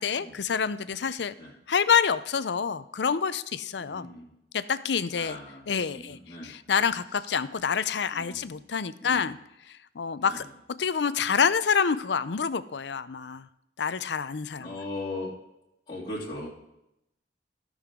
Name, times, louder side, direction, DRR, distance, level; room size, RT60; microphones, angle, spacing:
voice 1, 0.0-1.3 1.7-4.1 4.5-5.4 5.7-6.2 6.4-9.4 9.7-10.4 10.8-13.5 13.8-14.7, left 6 dB, 80° left, 15 dB, 0.5 m, -27 dB
voice 2, 3.8-4.3 5.1-5.6 5.9-6.5 8.1-8.6 9.0-9.3 10.1-10.5 14.6-15.3 15.9-16.5, left 2 dB, 30° left, -10 dB, 2.8 m, -39 dB
16.0 x 6.4 x 3.8 m, 0.85 s
head